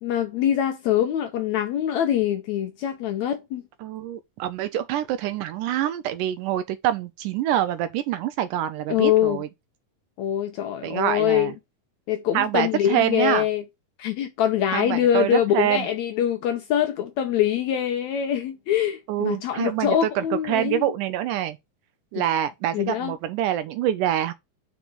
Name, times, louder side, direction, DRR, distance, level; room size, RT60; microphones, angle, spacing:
voice 1, 0.0-3.6 8.9-9.4 10.2-11.5 12.1-13.6 14.0-20.9 22.7-23.1, left 10 dB, 75° left, 1.8 m, -24 dB
voice 2, 3.8-9.5 10.8-11.5 12.3-13.4 14.7-15.9 19.1-21.6 22.1-24.3, right 11 dB, 80° right, 2.0 m, -25 dB
5.3 x 4.6 x 6.0 m
omnidirectional pair, 4.0 m